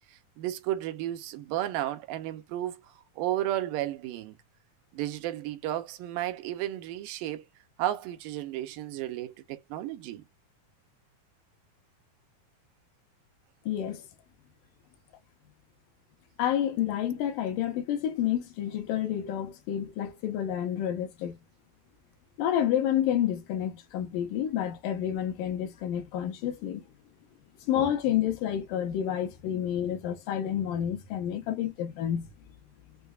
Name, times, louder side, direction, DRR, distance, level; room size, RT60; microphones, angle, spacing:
voice 1, 0.1-2.8 3.2-4.4 4.9-7.5 7.8-10.2, right 13 dB, 85° right, 2.3 m, -33 dB
voice 2, 13.7-14.1 16.4-21.4 22.4-26.8 27.7-32.3, left 10 dB, 80° left, 2.5 m, -29 dB
6.6 x 2.2 x 2.4 m
omnidirectional pair, 3.9 m